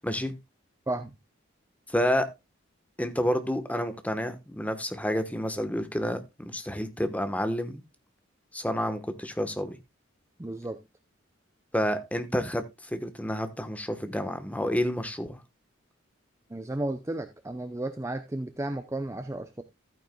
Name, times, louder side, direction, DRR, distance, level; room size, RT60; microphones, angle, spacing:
voice 1, 0.0-0.3 1.9-2.3 3.0-7.8 8.5-9.8 11.7-12.6 12.9-15.4, equal, 5° left, 1.1 m, -29 dB
voice 2, 10.4-10.8 16.5-19.6, right 1 dB, 15° right, 0.6 m, -33 dB
14.0 x 9.1 x 2.2 m
head